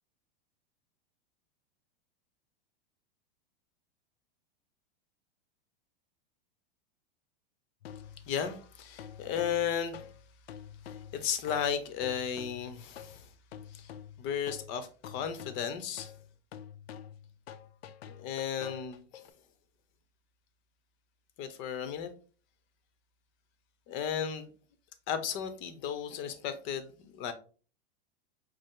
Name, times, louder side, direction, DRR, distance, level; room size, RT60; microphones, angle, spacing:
sound 1, 7.8-19.3, left 9 dB, 90° left, 0.5 m, -48 dB
voice 1, 8.2-10.0 10.8-13.3 13.7-13.9 14.2-16.1 18.1-19.2 21.4-22.1 23.9-24.5 25.1-27.3, left 8 dB, 40° left, 0.7 m, -35 dB
5.2 x 2.0 x 3.6 m
hypercardioid pair, 125°, 30 cm